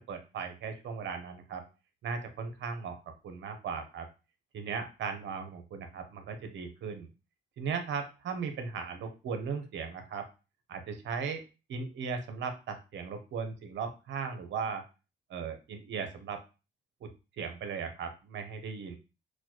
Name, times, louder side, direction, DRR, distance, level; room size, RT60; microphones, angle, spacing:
voice 1, 0.1-1.6 2.0-3.0 3.2-4.1 4.5-7.1 7.6-10.3 10.7-11.4 11.7-14.8 15.3-16.4 17.0-17.1 17.4-19.0, right 5 dB, 70° right, 7 dB, 0.8 m, -37 dB
4.2 x 2.3 x 2.9 m, 0.30 s
cardioid pair, 90°, 20 cm